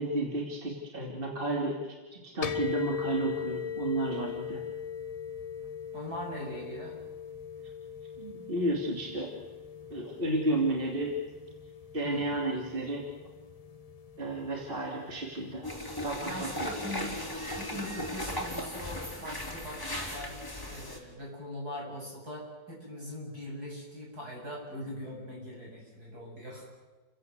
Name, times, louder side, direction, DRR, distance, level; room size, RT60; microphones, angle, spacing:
voice 1, 0.0-4.6 8.2-9.3 9.9-11.2 11.9-13.0 14.2-15.6 16.0-16.7, right 2 dB, 30° right, 0 dB, 3.0 m, -32 dB
sound 1, 2.4-19.8, left 7 dB, 80° left, 0.3 m, -41 dB
voice 2, 5.9-7.0 12.0-12.3 16.2-17.1 17.6-20.4 20.7-26.7, equal, 60° right, -2 dB, 8.7 m, -41 dB
sound 2, 15.6-21.0, left 1 dB, 10° left, 3.7 m, -37 dB
30.0 x 16.5 x 8.1 m, 1.3 s
omnidirectional pair, 1.9 m